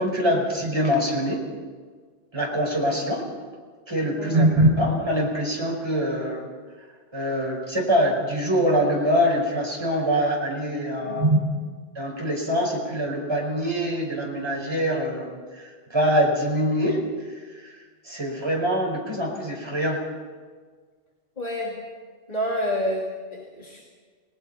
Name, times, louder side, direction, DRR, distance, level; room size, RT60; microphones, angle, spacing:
voice 1, 0.0-1.4 2.3-3.3 3.9-6.5 7.1-11.4 11.9-17.0 17.6-17.7 18.0-20.0, equal, 25° right, -1 dB, 5.1 m, -24 dB
voice 2, 11.0-11.3 21.4-21.8 22.3-23.8, equal, 35° left, -2 dB, 2.7 m, -29 dB
30.0 x 20.0 x 5.7 m, 1.6 s
omnidirectional pair, 1.1 m